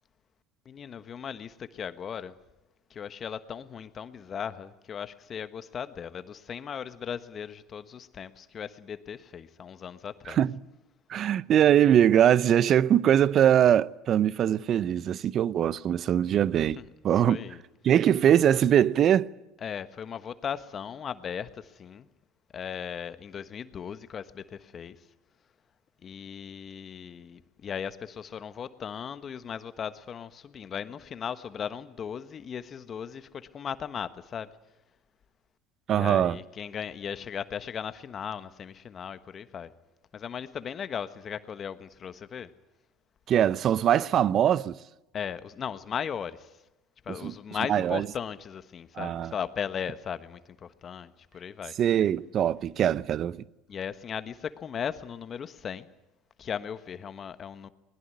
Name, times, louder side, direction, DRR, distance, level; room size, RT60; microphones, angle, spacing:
voice 1, 0.6-2.4 2.9-10.4 16.8-16.9 17.2-17.6 19.6-22.1 22.5-25.0 26.0-34.5 35.9-39.7 40.1-42.5 45.1-46.5 47.0-51.7 53.7-55.9 56.4-57.7, left 7 dB, 40° left, 1.3 m, -37 dB
voice 2, 10.3-10.6 11.1-17.4 17.8-19.3 35.9-36.4 43.3-44.8 47.2-47.3 47.7-48.1 49.0-49.3 51.8-53.4, right 10 dB, 50° right, 0.7 m, -22 dB
21.0 x 21.0 x 9.5 m
hypercardioid pair, 85°, 0 cm